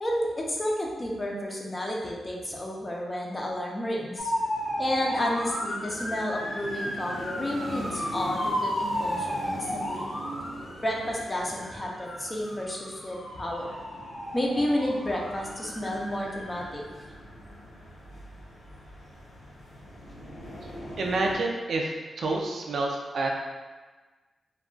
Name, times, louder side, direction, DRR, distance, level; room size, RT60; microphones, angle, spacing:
voice 1, 0.0-4.3 4.8-10.1 10.8-13.8 14.3-16.8, left 1 dB, 25° left, -2 dB, 0.5 m, -31 dB
sound 1, 4.2-21.3, equal, 90° left, 1.0 m, -34 dB
voice 2, 21.0-23.3, right 2 dB, 70° right, 0 dB, 0.4 m, -28 dB
2.3 x 2.3 x 3.7 m, 1.3 s
cardioid pair, 85°, 0 cm